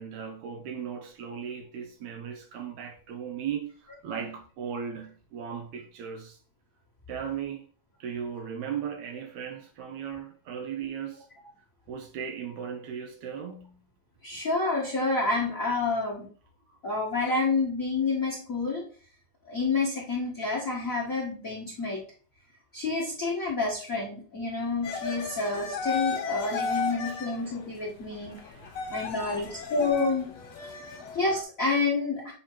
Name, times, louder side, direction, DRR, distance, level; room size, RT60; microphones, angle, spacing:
voice 1, 0.0-6.4 7.1-7.7 8.0-11.3 11.9-13.8 25.1-25.2 26.6-27.2 28.5-29.5 30.9-31.0, right 7 dB, 75° right, 1.9 m, -37 dB
voice 2, 14.2-16.3 16.8-18.8 19.4-22.0 22.7-28.5 28.9-30.3 30.6-30.8 31.1-32.3, left 3 dB, 40° left, 1.2 m, -29 dB
sound 1, 24.8-31.4, left 5 dB, 60° left, 2.3 m, -35 dB
7.9 x 2.9 x 4.5 m
omnidirectional pair, 3.7 m